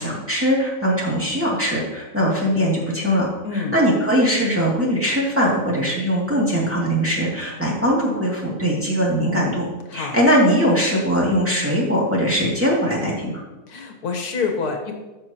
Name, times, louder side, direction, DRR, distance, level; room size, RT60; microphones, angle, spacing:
voice 1, 0.0-9.6 9.9-13.4, equal, 10° right, -5 dB, 2.4 m, -21 dB
voice 2, 3.4-3.8 9.9-10.2 13.7-14.9, left 5 dB, 85° left, 3 dB, 1.7 m, -26 dB
14.5 x 6.6 x 2.9 m, 1.1 s
omnidirectional pair, 1.6 m